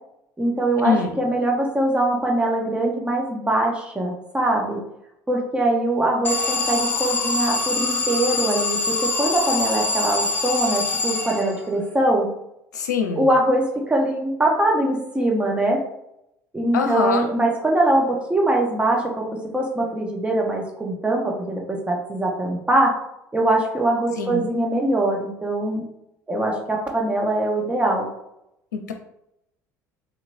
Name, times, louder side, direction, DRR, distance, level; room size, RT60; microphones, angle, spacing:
voice 1, 0.4-4.8 5.3-12.3 13.2-15.8 16.5-23.0 23.3-25.9 26.3-28.1, right 1 dB, 10° right, -1 dB, 1.0 m, -22 dB
Alarm, 6.2-11.8, left 3 dB, 20° left, 0.8 m, -24 dB
voice 2, 12.7-13.3 16.7-17.3 24.2-24.4 28.7-28.9, left 6 dB, 80° left, 4 dB, 0.6 m, -23 dB
4.1 x 3.0 x 2.6 m, 0.81 s
figure-of-eight pair, 65°, 9 cm